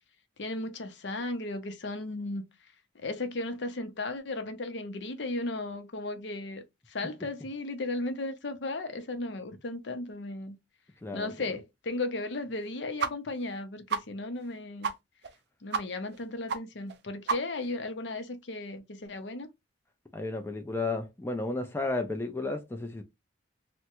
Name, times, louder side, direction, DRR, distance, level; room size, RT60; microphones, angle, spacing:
voice 1, 0.4-2.4 2.9-10.6 11.1-14.9 15.6-19.5, left 2 dB, 65° left, 0.6 m, -35 dB
sound 1, 13.0-13.1 13.4-13.5 13.9-14.0 14.4-14.5 14.8-14.9 15.2-15.4 15.7-15.8 16.1-16.2 16.5-16.6 16.9-17.0 17.3-17.7, right 5 dB, 55° right, 0.4 m, -30 dB
voice 2, 20.1-23.0, left 2 dB, 10° left, 0.4 m, -33 dB
3.3 x 2.1 x 2.9 m
head